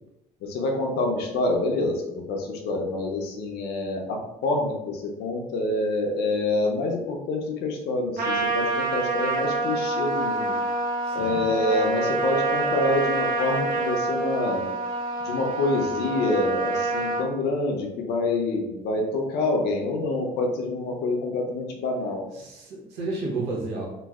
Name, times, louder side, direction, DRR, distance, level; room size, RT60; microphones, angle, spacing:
voice 1, 0.4-10.5 11.1-14.6 15.2-22.2, left 2 dB, 80° left, 2 dB, 0.7 m, -27 dB
Trumpet, 8.2-17.2, right 2 dB, 55° right, 0.6 m, -27 dB
voice 2, 11.1-11.5 22.3-23.9, right 3 dB, 85° right, -2 dB, 1.0 m, -32 dB
3.1 x 2.0 x 3.5 m, 0.91 s
cardioid pair, 110°, 17 cm